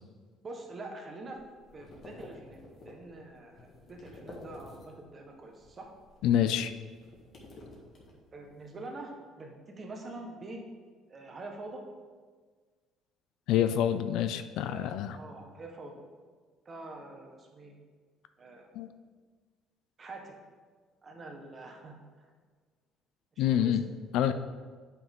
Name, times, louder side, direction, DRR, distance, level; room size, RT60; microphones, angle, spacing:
voice 1, 0.4-1.4 1.7-2.6 2.8-5.9 8.3-10.6 11.1-11.8 14.7-15.9 16.6-17.8 18.4-18.7 20.0-20.3 21.0-22.3 23.3-23.8, right 2 dB, 30° right, 2 dB, 1.1 m, -45 dB
sound 1, 1.3-5.2 5.5-8.6, left 2 dB, 40° left, 1.7 m, -51 dB
voice 2, 6.2-6.7 13.5-15.2 18.7-18.9 23.4-23.8 24.1-24.3, left 10 dB, 70° left, 11 dB, 0.4 m, -27 dB
9.4 x 5.7 x 3.6 m, 1.5 s
cardioid pair, 140°, 0 cm